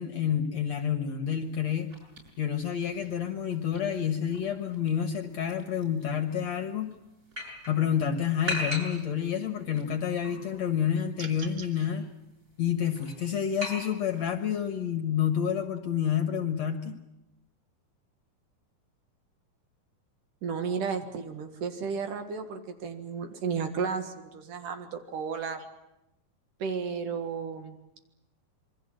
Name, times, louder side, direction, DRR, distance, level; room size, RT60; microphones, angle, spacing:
voice 1, 0.0-1.9 2.4-6.9 7.7-12.1 12.6-17.0, left 8 dB, 60° left, 7 dB, 2.1 m, -29 dB
sound 1, 1.4-14.4, left 1 dB, 20° right, 7.5 m, -42 dB
sound 2, 11.1-11.7, right 4 dB, 40° right, 2.2 m, -43 dB
voice 2, 20.4-25.6 26.6-27.8, right 6 dB, 65° right, 6 dB, 3.2 m, -33 dB
27.0 x 22.5 x 7.6 m, 0.89 s
omnidirectional pair, 4.3 m